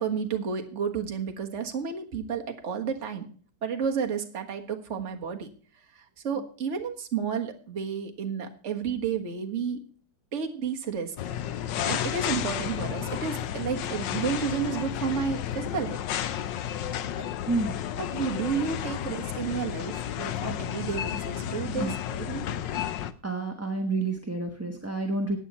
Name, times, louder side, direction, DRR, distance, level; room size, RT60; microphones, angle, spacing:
voice 1, 0.0-3.3 3.6-5.5 5.9-9.8 10.3-11.1 11.5-16.0 18.0-22.5, right 6 dB, 40° right, 3 dB, 1.7 m, -31 dB
sound 1, 11.2-23.1, left 10 dB, 80° left, 1.4 m, -32 dB
voice 2, 17.5-17.8 21.8-21.9 23.2-25.4, right 3 dB, 10° right, 3 dB, 1.0 m, -29 dB
15.0 x 9.3 x 4.2 m, 0.42 s
omnidirectional pair, 2.0 m